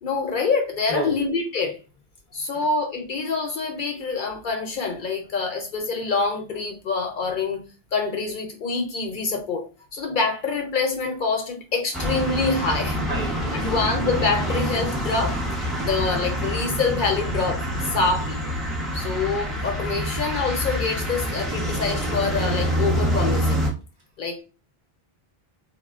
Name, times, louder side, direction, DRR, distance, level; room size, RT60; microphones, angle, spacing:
voice 1, 0.0-1.8 2.3-13.1 13.5-15.4 15.8-18.4 18.9-23.7 24.2-24.4, left 4 dB, 60° left, 0.6 m, -26 dB
voice 2, 0.9-1.2 13.1-13.7, right 2 dB, 55° right, 1.0 m, -31 dB
sound 1, 11.9-23.7, equal, ahead, 0.7 m, -26 dB
3.5 x 2.1 x 2.3 m
omnidirectional pair, 1.1 m